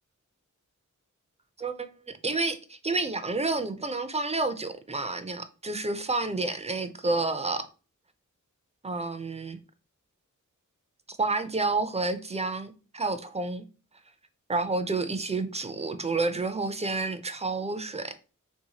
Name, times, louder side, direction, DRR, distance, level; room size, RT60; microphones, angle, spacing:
voice 1, 1.6-7.7 8.8-9.6 11.1-13.6 14.5-18.1, right 3 dB, 20° right, 0.3 m, -30 dB
3.4 x 2.7 x 2.8 m
wide cardioid pair, 85°, 31 cm